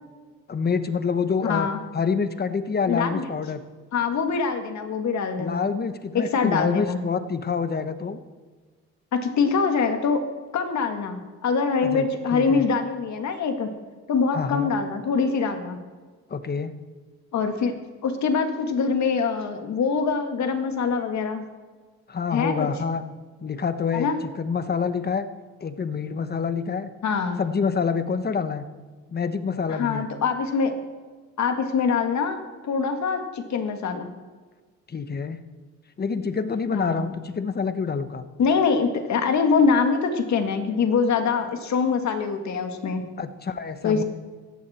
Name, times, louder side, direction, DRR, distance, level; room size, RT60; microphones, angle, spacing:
voice 1, 0.5-1.7 1.9-3.6 5.4-8.2 11.8-12.0 12.3-12.6 14.3-14.7 16.3-16.7 22.1-23.0 23.4-25.3 25.6-26.9 27.4-28.6 29.1-30.1 34.9-35.4 36.0-38.2 43.2-44.0, left 5 dB, 30° left, 11 dB, 1.1 m, -27 dB
voice 2, 1.4-1.8 2.9-3.3 3.9-5.7 6.1-7.0 9.1-10.2 10.5-13.7 14.1-15.8 17.3-17.7 18.0-21.4 22.3-22.7 23.9-24.2 27.0-27.4 29.7-30.7 31.4-34.1 36.7-37.0 38.4-43.0 43.8-44.0, left 5 dB, 65° left, 6 dB, 2.0 m, -24 dB
17.0 x 14.5 x 4.4 m, 1.5 s
cardioid pair, 90°, 30 cm